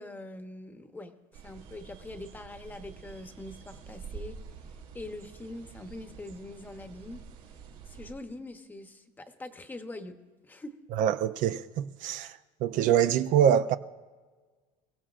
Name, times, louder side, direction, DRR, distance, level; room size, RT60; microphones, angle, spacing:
voice 1, 0.0-4.4 4.9-7.2 7.9-10.2 10.4-10.7, left 2 dB, 10° left, 0.9 m, -43 dB
sound 1, 1.3-8.1, right 6 dB, 80° right, 3.4 m, -47 dB
voice 2, 11.0-13.8, right 9 dB, 60° right, 0.5 m, -25 dB
28.5 x 16.0 x 2.5 m
cardioid pair, 155°, 15 cm